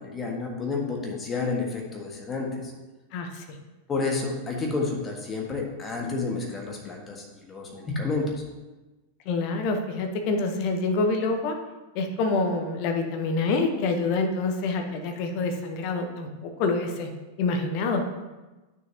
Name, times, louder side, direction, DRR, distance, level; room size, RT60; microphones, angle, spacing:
voice 1, 0.0-2.7 3.9-8.3, left 3 dB, 20° left, 0 dB, 1.6 m, -30 dB
voice 2, 3.1-3.4 9.2-11.6 11.9-17.1 17.4-18.0, left 3 dB, 45° left, 5 dB, 1.0 m, -26 dB
9.4 x 6.6 x 2.9 m, 1.1 s
figure-of-eight pair, 90°, 0 cm